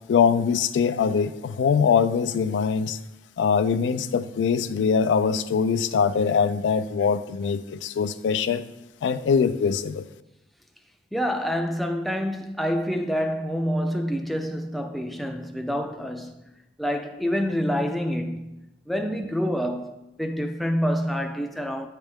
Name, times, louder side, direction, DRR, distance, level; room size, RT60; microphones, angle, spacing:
voice 1, 0.1-3.0 3.4-8.6 9.0-10.1, left 6 dB, 85° left, 0.3 m, -22 dB
voice 2, 11.1-16.4 16.8-21.9, equal, ahead, 0.3 m, -27 dB
8.9 x 3.3 x 3.5 m
head